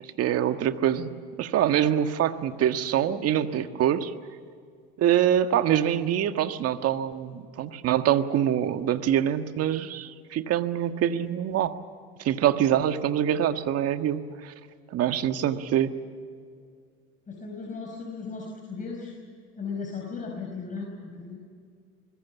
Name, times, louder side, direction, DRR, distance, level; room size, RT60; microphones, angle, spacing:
voice 1, 0.2-4.1 5.0-11.8 12.2-14.5 14.9-15.9, right 10 dB, 50° right, 8 dB, 1.7 m, -25 dB
voice 2, 17.3-19.1 19.6-21.4, left 4 dB, 25° left, 0 dB, 5.0 m, -36 dB
25.5 x 21.5 x 7.2 m, 2.2 s
supercardioid pair, 95°, 31 cm